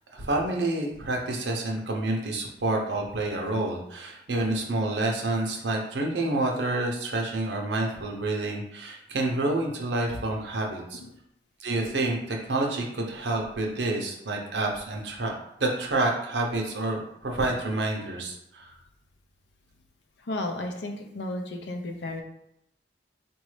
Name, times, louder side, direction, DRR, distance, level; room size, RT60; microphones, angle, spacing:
voice 1, 0.1-11.0 11.6-15.3 15.6-18.7, right 2 dB, 80° right, 0 dB, 0.8 m, -28 dB
voice 2, 20.2-22.2, left 1 dB, 75° left, 4 dB, 0.6 m, -33 dB
4.1 x 2.6 x 3.2 m, 0.77 s
head